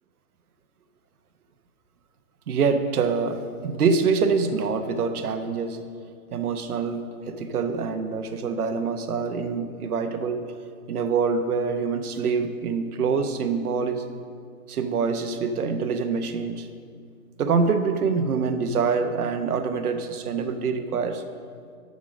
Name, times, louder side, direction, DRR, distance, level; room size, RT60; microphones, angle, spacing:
voice 1, 2.5-5.8 6.3-10.4 10.9-14.0 14.7-16.7 17.4-21.2, right 5 dB, 85° right, 8 dB, 1.1 m, -25 dB
9.4 x 6.4 x 6.2 m, 2.2 s
hypercardioid pair, 175°, 43 cm